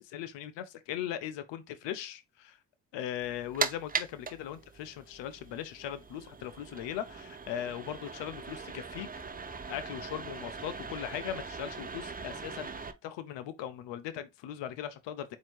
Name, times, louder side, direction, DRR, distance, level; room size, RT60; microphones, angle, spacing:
voice 1, 0.0-2.6 2.9-9.1 9.7-15.4, left 10 dB, 85° left, 0.6 m, -39 dB
sound 1, 3.2-12.9, right 5 dB, 20° right, 0.6 m, -40 dB
4.3 x 2.8 x 4.4 m
supercardioid pair, 50°, 42 cm